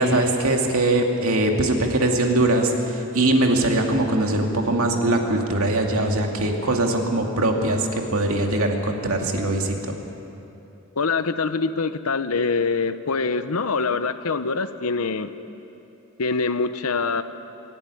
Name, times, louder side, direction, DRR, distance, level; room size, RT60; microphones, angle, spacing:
voice 1, 0.0-9.9, right 1 dB, 80° right, 2 dB, 2.4 m, -21 dB
voice 2, 11.0-15.3 16.2-17.2, left 4 dB, 90° left, 12 dB, 0.9 m, -24 dB
26.5 x 11.5 x 9.8 m, 2.9 s
head